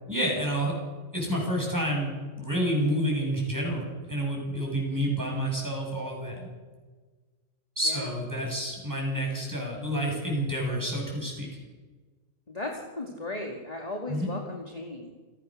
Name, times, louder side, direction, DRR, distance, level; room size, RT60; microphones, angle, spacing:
voice 1, 0.1-0.7 1.1-3.8 4.1-6.5 7.8-11.5 14.1-14.3, equal, 15° right, -1 dB, 8.1 m, -29 dB
voice 2, 12.5-15.1, left 2 dB, 25° left, 0 dB, 2.4 m, -36 dB
29.0 x 19.0 x 6.6 m, 1.4 s
omnidirectional pair, 1.5 m